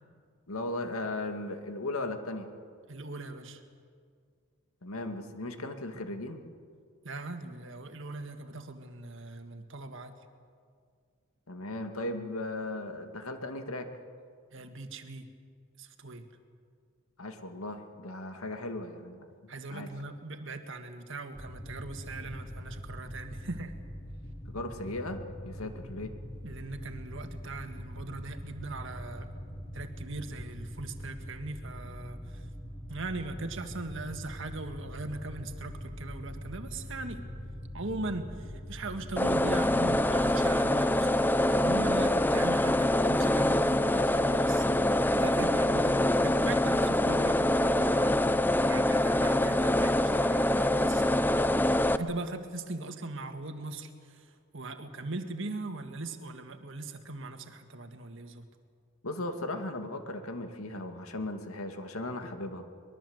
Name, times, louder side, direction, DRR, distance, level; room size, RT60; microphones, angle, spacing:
voice 1, 0.5-2.5 4.8-6.4 11.5-13.9 17.2-19.3 19.7-19.9 24.5-26.1 59.0-62.6, left 2 dB, 90° left, 6 dB, 2.2 m, -37 dB
voice 2, 2.9-3.6 7.0-10.2 14.5-15.3 15.8-16.3 19.5-23.7 26.4-29.3 29.7-32.5 32.9-37.2 37.7-44.9 45.2-48.2 48.6-51.3 52.0-58.5, right 2 dB, 60° right, 7 dB, 1.8 m, -40 dB
sound 1, 21.3-40.2, equal, 30° left, 4.5 m, -43 dB
sound 2, 39.2-52.0, left 1 dB, 10° left, 0.6 m, -25 dB
23.0 x 21.5 x 8.0 m, 2.1 s
head